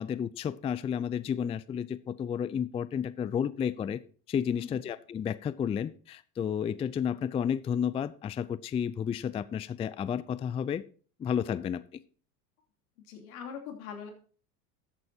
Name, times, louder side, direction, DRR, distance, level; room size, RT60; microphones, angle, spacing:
voice 1, 0.0-4.0 4.3-10.8 11.2-11.8, left 8 dB, 15° left, 17 dB, 0.3 m, -31 dB
voice 2, 13.0-14.1, left 7 dB, 75° left, 4 dB, 3.0 m, -42 dB
13.0 x 8.8 x 2.7 m, 0.41 s
hypercardioid pair, 85°, 43 cm